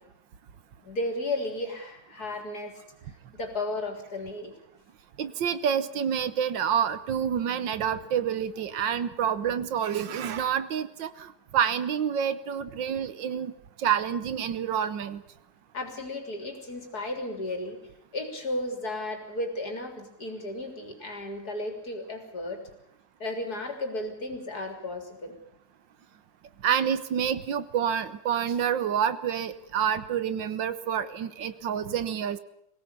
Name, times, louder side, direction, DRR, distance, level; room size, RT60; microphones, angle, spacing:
voice 1, 0.8-2.8 3.1-4.5 15.7-17.8 18.1-22.6 23.2-25.4, left 2 dB, 55° left, 5 dB, 4.1 m, -34 dB
voice 2, 5.2-13.5 13.8-15.2 26.6-32.4, right 8 dB, 75° right, 14 dB, 1.8 m, -28 dB
22.0 x 17.5 x 8.4 m, 0.78 s
omnidirectional pair, 2.0 m